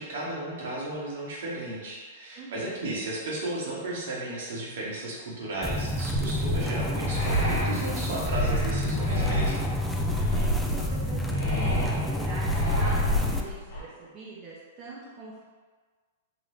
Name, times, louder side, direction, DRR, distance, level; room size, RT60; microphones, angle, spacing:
voice 1, 0.0-9.7, right 2 dB, 70° right, -5 dB, 1.0 m, -34 dB
voice 2, 2.3-2.9 10.3-15.4, right 3 dB, 35° right, -6 dB, 0.6 m, -43 dB
sound 1, 5.6-13.4, left 1 dB, 5° left, 0.3 m, -29 dB
sound 2, 6.1-13.8, equal, 80° left, 1.3 m, -28 dB
2.8 x 2.4 x 3.3 m, 1.5 s
hypercardioid pair, 125°, 0 cm